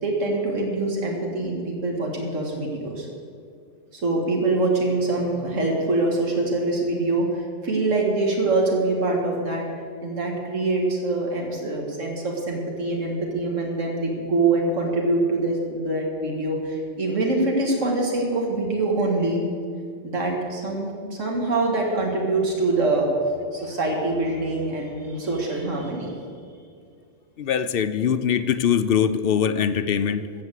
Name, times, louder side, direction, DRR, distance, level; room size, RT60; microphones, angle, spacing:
voice 1, 0.0-3.1 3.9-9.6 10.0-19.4 20.0-23.1 23.5-26.2, right 2 dB, 85° right, -1 dB, 2.2 m, -24 dB
voice 2, 27.4-30.3, left 8 dB, 60° left, 11 dB, 0.7 m, -22 dB
15.0 x 7.0 x 8.2 m, 2.2 s
omnidirectional pair, 1.3 m